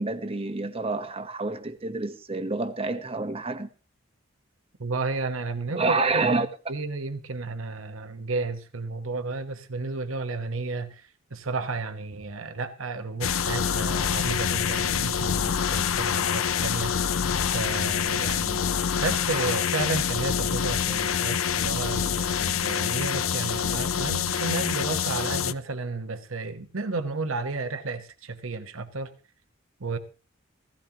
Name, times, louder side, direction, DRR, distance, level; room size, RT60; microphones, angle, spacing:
voice 1, 0.0-3.7 5.7-6.5, right 3 dB, 30° right, 1.1 m, -28 dB
voice 2, 4.8-17.2 17.5-18.6 19.0-29.1 29.8-30.0, right 3 dB, 80° right, 1.1 m, -32 dB
sound 1, 13.2-25.5, left 8 dB, 85° left, 0.6 m, -26 dB
16.0 x 16.0 x 2.9 m
head